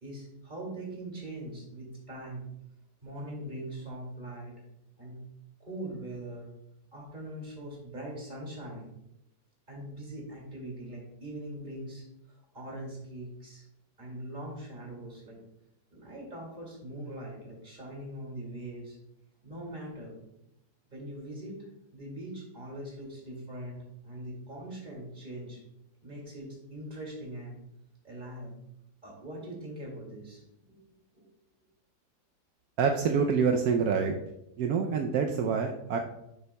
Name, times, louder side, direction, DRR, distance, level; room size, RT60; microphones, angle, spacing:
voice 1, 0.0-2.5 3.0-4.5 5.0-5.2 5.6-6.5 6.9-8.9 9.7-13.6 14.0-15.4 15.9-19.0 19.4-20.2 20.9-21.6 21.9-25.6 26.0-27.6 28.0-28.5 29.0-30.8 31.1-31.2, right 1 dB, 25° right, -2 dB, 2.4 m, -42 dB
voice 2, 32.8-34.2 34.6-36.0, right 6 dB, 70° right, 3 dB, 0.9 m, -26 dB
10.5 x 6.8 x 2.2 m, 0.83 s
omnidirectional pair, 2.2 m